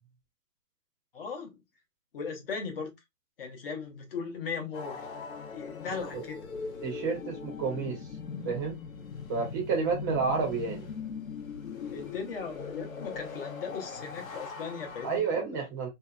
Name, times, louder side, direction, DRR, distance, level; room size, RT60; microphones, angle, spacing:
voice 1, 1.1-1.6 2.1-2.9 3.4-5.1 5.5-6.5 11.9-15.6, left 5 dB, 45° left, 0.8 m, -38 dB
sound 1, 4.7-15.2, left 5 dB, 80° left, 0.8 m, -40 dB
voice 2, 6.8-8.0 8.4-8.8 9.3-10.9 15.0-15.9, right 5 dB, 15° right, 0.6 m, -30 dB
2.7 x 2.3 x 2.3 m
hypercardioid pair, 150°, 40 cm